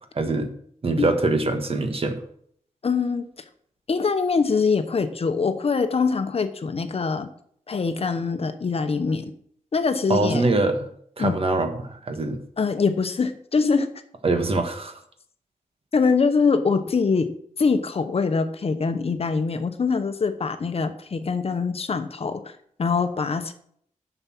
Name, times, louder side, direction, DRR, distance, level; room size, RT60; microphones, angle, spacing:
voice 1, 0.1-0.5 0.8-2.2 10.1-10.9 11.2-12.4 14.2-15.0, right 2 dB, 45° right, 6 dB, 1.5 m, -23 dB
voice 2, 2.8-3.3 3.9-7.3 7.7-9.3 9.7-10.5 11.2-11.4 12.6-13.9 15.9-17.3 17.6-23.5, left 5 dB, 50° left, 9 dB, 0.9 m, -23 dB
11.0 x 6.9 x 6.1 m, 0.65 s
wide cardioid pair, 135°, 13 cm